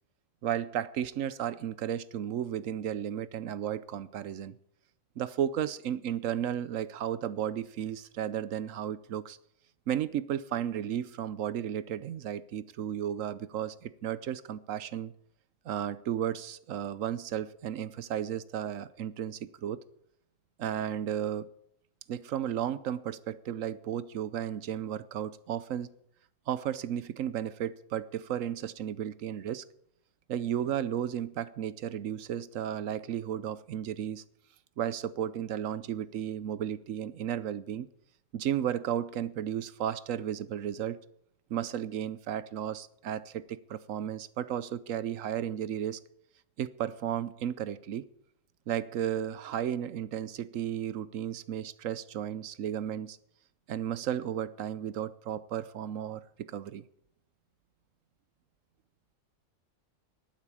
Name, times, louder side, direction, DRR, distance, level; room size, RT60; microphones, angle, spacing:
voice 1, 0.4-4.6 5.2-9.4 9.9-15.1 15.6-19.8 20.6-21.5 22.1-25.9 26.5-29.6 30.3-34.2 34.8-37.9 38.3-41.0 41.5-46.0 46.6-48.1 48.7-53.2 53.7-56.8, right 10 dB, 85° right, 1.1 m, -34 dB
12.0 x 9.0 x 8.5 m
omnidirectional pair, 1.3 m